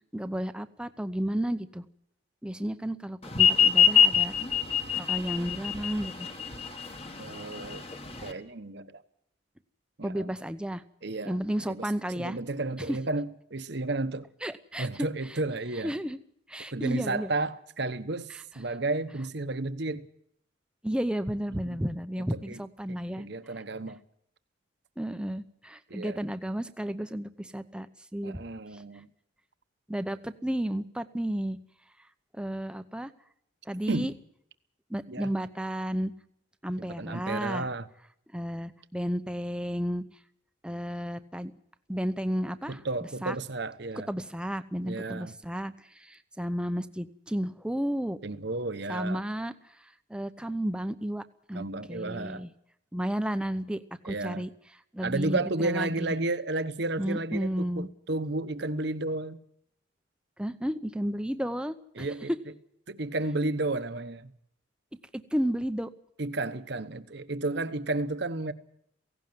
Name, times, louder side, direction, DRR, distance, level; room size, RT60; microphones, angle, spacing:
voice 1, 0.1-1.8 2.4-4.3 4.9-6.3 10.0-10.8 11.3-12.4 12.8-13.0 14.4-15.1 15.8-16.2 16.5-17.3 18.3-18.4 20.8-23.3 25.0-28.4 28.7-28.8 29.9-31.6 32.3-33.1 33.7-34.1 34.9-36.1 36.6-37.7 38.3-40.0 40.6-41.5 41.9-42.8 43.2-43.3 44.1-48.2 48.9-49.5 49.8-52.5 52.9-54.5 54.9-56.1 57.0-57.9 60.4-62.1 65.3-65.9, equal, 5° right, 0.7 m, -32 dB
sound 1, 3.3-8.3, left 7 dB, 30° left, 1.6 m, -23 dB
voice 2, 7.2-7.9 8.2-9.0 10.0-10.3 11.0-11.9 12.1-14.3 14.8-15.9 16.7-20.1 21.6-21.8 22.3-22.6 22.9-24.0 25.9-26.2 28.2-29.1 33.9-34.1 35.1-35.3 36.8-37.9 42.7-44.1 44.8-45.3 48.2-49.2 51.5-52.4 54.0-54.5 55.0-59.4 61.9-62.3 62.9-64.3 66.2-68.5, right 2 dB, 55° right, 1.1 m, -32 dB
17.5 x 16.5 x 9.4 m
head